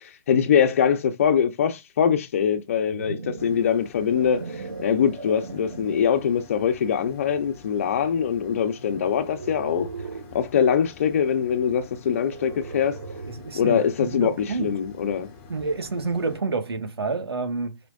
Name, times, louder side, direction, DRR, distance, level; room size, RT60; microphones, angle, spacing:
voice 1, 0.0-9.9 10.3-13.0 13.5-15.3, left 7 dB, 35° left, 1.1 m, -23 dB
sound 1, 2.5-6.2 6.8-7.1 8.9-10.4 12.1-13.5, right 4 dB, 60° right, 2.1 m, -38 dB
sound 2, 3.4-16.4, left 5 dB, 15° left, 1.4 m, -48 dB
voice 2, 13.3-14.7 15.5-17.8, right 3 dB, 90° right, 2.0 m, -29 dB
8.2 x 4.9 x 2.7 m
hypercardioid pair, 170°, 13 cm